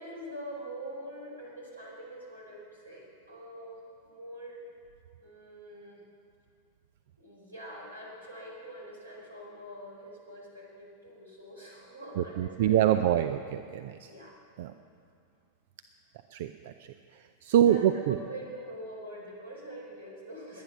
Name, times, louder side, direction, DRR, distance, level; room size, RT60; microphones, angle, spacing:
voice 1, 0.0-4.6 5.2-6.0 7.2-13.0 14.0-14.4 14.6-14.7 17.5-20.6, right 1 dB, 80° right, -2 dB, 4.3 m, -44 dB
voice 2, 12.2-14.1 14.6-14.7 16.3-16.7 17.4-18.2, right 11 dB, 55° right, 11 dB, 0.5 m, -25 dB
21.5 x 9.1 x 6.3 m, 2.4 s
figure-of-eight pair, 90°, 0 cm